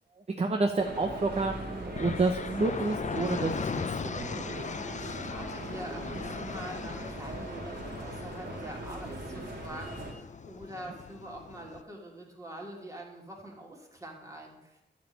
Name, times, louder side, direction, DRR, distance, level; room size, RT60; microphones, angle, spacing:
voice 1, 0.4-4.4, right 3 dB, 35° right, 4 dB, 0.9 m, -29 dB
sound 1, 0.8-10.1, right 1 dB, 60° right, 3.4 m, -40 dB
sound 2, 1.9-11.8, left 5 dB, 40° left, 0.5 m, -39 dB
voice 2, 4.9-14.8, right 1 dB, 15° right, -1 dB, 2.7 m, -45 dB
12.0 x 5.5 x 9.0 m, 0.92 s
wide cardioid pair, 155°, 19 cm